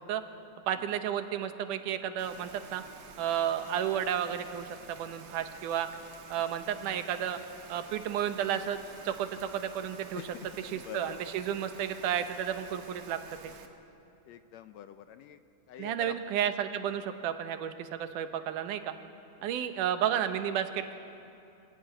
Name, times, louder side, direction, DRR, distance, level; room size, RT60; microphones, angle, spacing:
voice 1, 0.7-2.8 3.2-5.9 6.3-7.4 7.7-10.3 10.6-13.5 15.8-18.9 19.4-21.0, right 9 dB, 90° right, 8 dB, 2.6 m, -32 dB
Rain, 2.2-13.7, right 5 dB, 65° right, 2.7 m, -51 dB
voice 2, 10.2-11.4 14.3-15.4 15.7-16.1 19.4-19.5, left 10 dB, 75° left, 10 dB, 1.7 m, -46 dB
25.0 x 16.0 x 9.1 m, 2.7 s
omnidirectional pair, 3.5 m